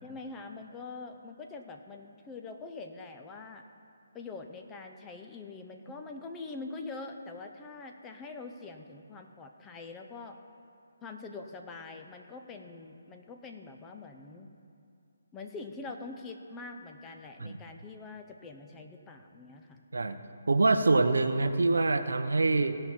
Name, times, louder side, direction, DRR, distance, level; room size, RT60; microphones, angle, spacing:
voice 1, 0.0-3.7 4.1-10.4 11.0-14.5 15.3-19.8, left 3 dB, 15° left, 4 dB, 0.7 m, -44 dB
voice 2, 20.5-22.8, right 3 dB, 85° right, 9 dB, 0.7 m, -25 dB
17.0 x 5.7 x 4.5 m, 2.6 s
hypercardioid pair, 155°, 0 cm